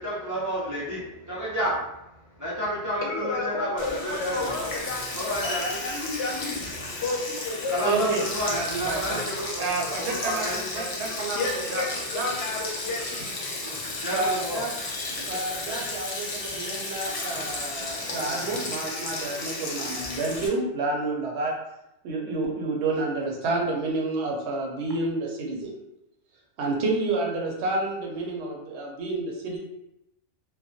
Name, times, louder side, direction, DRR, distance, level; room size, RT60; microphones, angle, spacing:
voice 1, 0.0-1.9 2.4-4.6 5.1-5.8 7.7-10.8 11.4-11.5 13.6-14.6 15.2-15.3 15.6-15.7, equal, 25° right, -8 dB, 0.4 m, -31 dB
voice 2, 3.0-6.6 7.0-7.8 11.3-13.3, left 3 dB, 75° left, 0 dB, 0.9 m, -32 dB
Sink (filling or washing), 3.8-20.5, left 2 dB, 60° left, 0.3 m, -34 dB
voice 3, 7.8-9.2 9.6-11.8 12.1-12.3 14.1-14.7 15.3-21.5 22.0-25.7 26.6-29.6, right 2 dB, 75° right, -1 dB, 0.9 m, -29 dB
2.3 x 2.1 x 2.6 m, 0.87 s
omnidirectional pair, 1.2 m